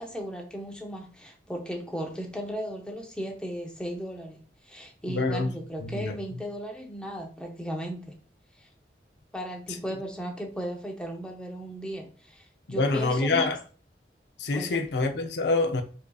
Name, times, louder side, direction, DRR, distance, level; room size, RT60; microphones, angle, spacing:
voice 1, 0.0-4.4 4.6-8.2 8.6-8.7 9.3-13.5 14.5-14.8, equal, 5° left, 0.6 m, -36 dB
voice 2, 5.1-5.5 5.8-6.1 12.7-13.6 14.4-15.8, left 3 dB, 75° left, 0.5 m, -26 dB
4.9 x 2.7 x 2.3 m
head